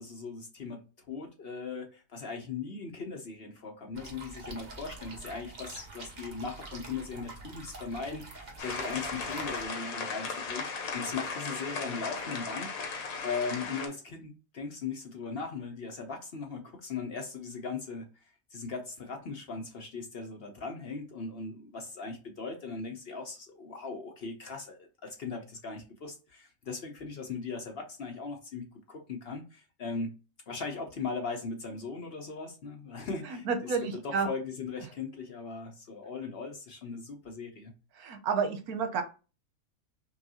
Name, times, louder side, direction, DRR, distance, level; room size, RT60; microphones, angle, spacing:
voice 1, 0.0-12.7 13.2-18.1 18.5-30.1 30.5-33.8 34.0-37.7, left 4 dB, 55° left, 3 dB, 0.7 m, -39 dB
sound 1, 3.9-9.7, right 3 dB, 35° right, 0.9 m, -46 dB
sound 2, 8.6-13.9, left 4 dB, 75° left, 1.2 m, -36 dB
voice 2, 33.3-34.3 38.0-39.0, right 5 dB, 85° right, 7 dB, 1.2 m, -30 dB
5.5 x 2.3 x 2.7 m, 0.32 s
omnidirectional pair, 1.5 m